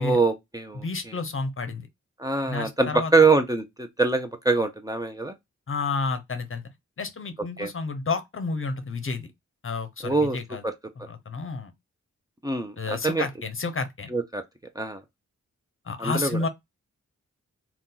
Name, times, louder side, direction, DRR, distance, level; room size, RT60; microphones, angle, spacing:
voice 1, 0.0-1.2 2.2-5.3 7.6-7.7 10.0-10.4 10.6-10.7 12.4-13.3 14.1-14.4 14.8-15.0 16.0-16.4, right 3 dB, 10° right, 0.6 m, -24 dB
voice 2, 0.8-1.9 2.5-3.1 5.7-6.6 7.0-9.3 9.6-10.6 11.1-11.7 12.8-14.1 15.9-16.5, left 4 dB, 45° left, 0.7 m, -30 dB
2.6 x 2.3 x 3.7 m
cardioid pair, 50°, 30 cm